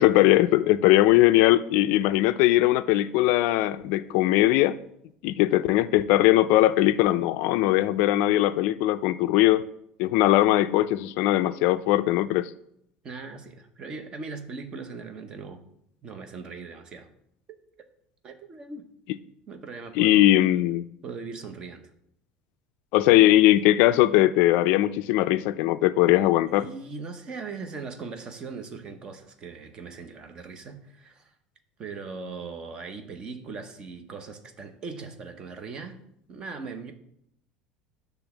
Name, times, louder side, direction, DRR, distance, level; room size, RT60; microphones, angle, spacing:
voice 1, 0.0-4.8 5.2-9.6 10.0-12.5 20.0-20.8 22.9-26.7, left 15 dB, 60° left, 0.3 m, -20 dB
voice 2, 13.0-15.6 16.0-17.1 18.2-18.9 19.5-20.3 21.0-21.9 26.5-31.3 31.8-36.0 36.3-36.9, right 4 dB, 25° right, 0.8 m, -39 dB
9.9 x 3.4 x 7.0 m
cardioid pair, 165°, 3 cm